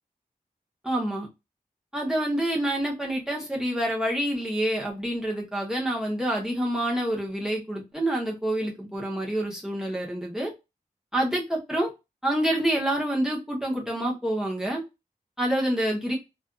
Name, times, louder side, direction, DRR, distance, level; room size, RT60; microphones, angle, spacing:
voice 1, 0.8-1.3 1.9-10.5 11.1-11.9 12.2-14.8 15.4-16.2, right 1 dB, 5° right, 0 dB, 0.9 m, -27 dB
2.4 x 2.4 x 2.3 m, 0.24 s
wide cardioid pair, 55°, 16 cm